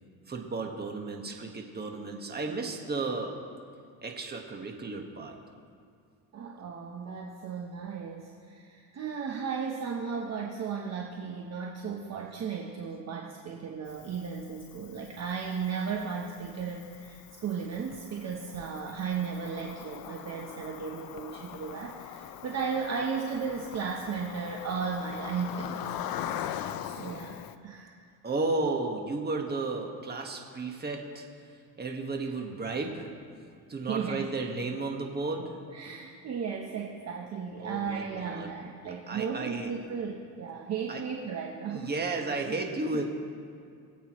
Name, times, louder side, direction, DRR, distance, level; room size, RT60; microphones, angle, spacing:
voice 1, 0.3-3.3 4.0-5.3 18.8-18.9 26.6-26.7 28.2-33.1 33.7-35.6 37.6-38.5 39.1-39.7 40.9-41.0 41.7-43.1, right 3 dB, 25° right, 2 dB, 1.6 m, -33 dB
voice 2, 6.3-26.6 27.0-27.3 27.6-27.9 33.9-34.3 35.7-41.9, right 6 dB, 40° right, 0 dB, 1.1 m, -35 dB
Cricket, 13.9-27.6, left 10 dB, 60° left, 0.7 m, -42 dB
24.0 x 8.3 x 3.1 m, 2.2 s
cardioid pair, 110°, 41 cm